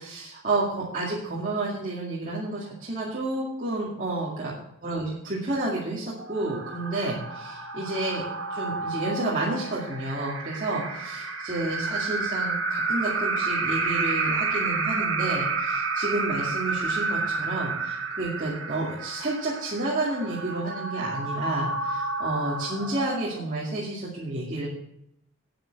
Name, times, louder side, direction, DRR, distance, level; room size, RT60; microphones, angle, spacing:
voice 1, 0.0-4.5 4.8-8.2 8.5-24.7, right 2 dB, 40° right, -6 dB, 2.2 m, -30 dB
sound 1, 6.2-23.6, right 3 dB, 65° right, 1.7 m, -30 dB
9.2 x 9.0 x 5.8 m, 0.78 s
head